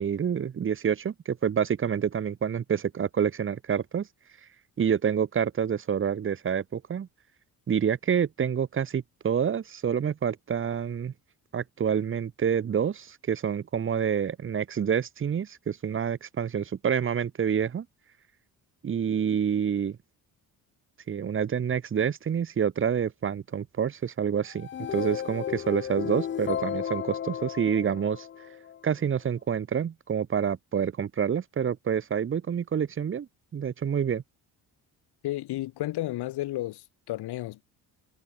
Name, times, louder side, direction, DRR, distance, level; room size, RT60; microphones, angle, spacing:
voice 1, 0.0-4.1 4.8-7.1 7.7-11.1 11.5-17.8 18.8-20.0 21.1-28.3 28.8-33.3 33.5-34.2, right 7 dB, 30° right, 1.2 m, -27 dB
sound 1, 24.5-28.8, left 9 dB, 30° left, 0.6 m, -34 dB
voice 2, 35.2-37.6, left 16 dB, 85° left, 1.3 m, -32 dB
cardioid pair, 170°, 38 cm